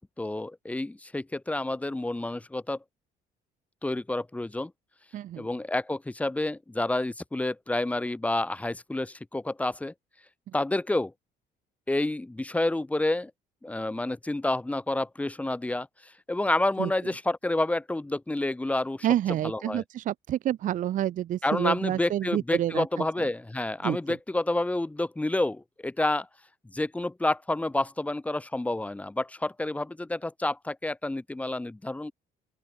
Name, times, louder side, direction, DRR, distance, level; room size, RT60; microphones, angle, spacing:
voice 1, 0.2-2.8 3.8-4.7 5.4-9.9 10.5-11.1 11.9-13.3 13.6-19.1 19.4-19.8 21.4-26.3 26.7-32.1, left 2 dB, 10° left, 0.6 m, -29 dB
voice 2, 5.1-5.5 16.8-16.9 19.0-23.3 23.8-24.0, right 12 dB, 50° right, 0.5 m, -28 dB
open air
cardioid pair, 110°, 17 cm